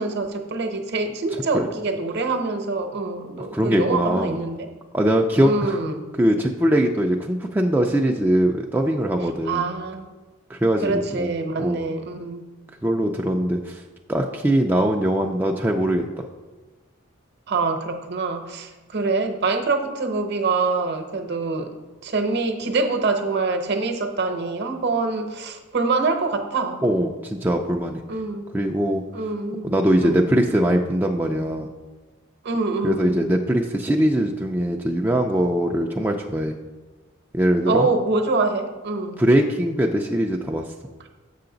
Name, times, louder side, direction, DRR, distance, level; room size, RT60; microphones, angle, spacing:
voice 1, 0.0-4.7 5.4-6.1 9.5-10.1 10.8-12.4 17.5-21.7 22.0-26.8 28.1-28.5 29.1-29.7 30.0-30.2 32.4-33.2 37.7-39.2, right 3 dB, 55° right, 6 dB, 0.8 m, -25 dB
voice 2, 3.4-4.4 4.9-5.8 6.2-9.6 10.5-11.3 11.6-11.9 12.8-13.8 14.1-16.0 26.8-28.0 28.5-29.0 29.6-31.7 32.8-36.5 37.3-37.9 39.2-40.6, right 1 dB, 10° right, 1 dB, 0.3 m, -21 dB
7.5 x 5.7 x 3.9 m, 1.2 s
head